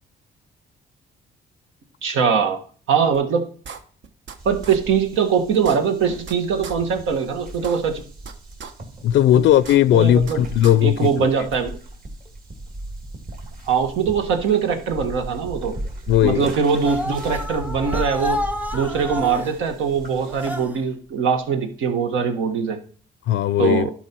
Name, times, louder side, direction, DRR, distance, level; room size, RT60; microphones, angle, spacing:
voice 1, 2.0-2.6 2.9-3.5 4.5-8.0 9.3-9.4 9.9-10.4 10.8-11.7 13.7-15.8 16.2-18.4 18.7-22.8 23.6-23.9, right 6 dB, 85° right, 1.6 m, -22 dB
sound 1, 3.1-3.2 3.6-4.4 4.6-4.8 5.1-5.2 5.5-6.3 6.6-6.7 7.1-7.2 7.5-8.3 8.6-8.7 9.1-9.2 9.5-10.3 10.6-10.7, right 6 dB, 65° right, 1.1 m, -37 dB
sound 2, 4.4-20.6, right 1 dB, 45° right, 2.4 m, -37 dB
voice 2, 9.0-11.3 16.1-16.5 23.3-23.9, left 11 dB, 75° left, 0.4 m, -17 dB
sound 3, 16.8-19.6 20.3-20.8, left 1 dB, 10° right, 0.8 m, -29 dB
11.5 x 4.7 x 4.5 m
cardioid pair, 90°, 20 cm